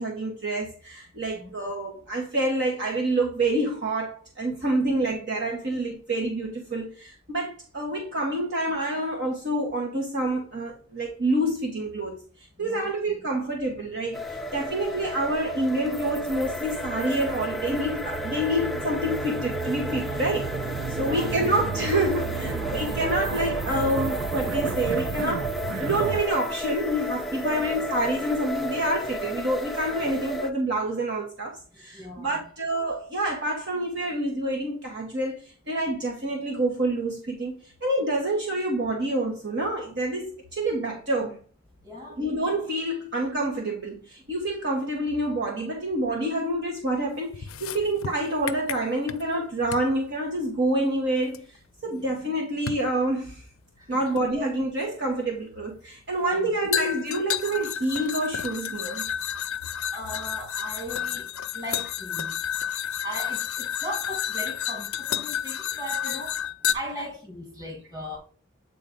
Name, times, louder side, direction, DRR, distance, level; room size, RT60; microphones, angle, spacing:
voice 1, 0.0-12.2 12.6-20.5 20.9-25.5 25.8-41.4 42.2-51.4 51.8-53.4 53.9-59.1, right 1 dB, 55° right, 1.4 m, -27 dB
voice 2, 12.6-13.2 20.3-20.5 21.0-21.3 22.4-22.5 23.1-23.2 27.4-27.7 31.9-32.4 41.8-42.2 51.9-52.1 53.8-54.0 54.4-54.5 56.2-56.5 59.9-62.4 63.0-66.4 66.7-68.2, equal, 20° right, 2.0 m, -38 dB
sound 1, 13.8-26.3, right 6 dB, 75° right, 0.4 m, -35 dB
sound 2, 14.1-30.5, equal, ahead, 0.5 m, -32 dB
sound 3, 47.3-49.4 49.7-49.9 51.3-51.4 52.7-52.9 54.2-54.3 56.7-66.7, left 10 dB, 70° left, 0.5 m, -31 dB
8.5 x 4.0 x 3.9 m
head